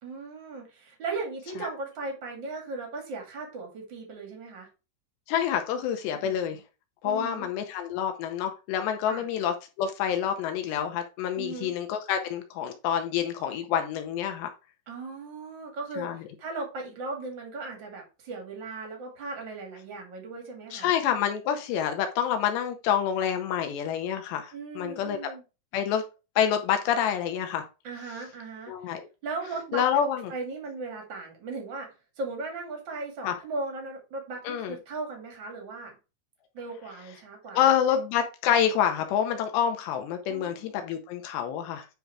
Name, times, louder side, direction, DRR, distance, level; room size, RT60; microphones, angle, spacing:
voice 1, 0.0-4.7 6.1-6.4 7.0-7.5 9.1-9.2 11.3-11.7 14.9-16.1 16.4-20.9 24.5-25.4 27.8-28.7 29.2-29.8 30.3-35.9 36.5-37.7 40.3-40.9, right 3 dB, 40° right, 1 dB, 1.9 m, -37 dB
voice 2, 5.3-6.6 7.0-14.5 16.0-16.2 20.7-25.2 25.7-26.0 26.4-27.6 28.7-29.0 29.7-30.3 33.2-33.3 34.4-34.8 37.5-41.9, left 9 dB, 75° left, 6 dB, 2.8 m, -27 dB
9.4 x 3.8 x 4.7 m, 0.30 s
omnidirectional pair, 5.4 m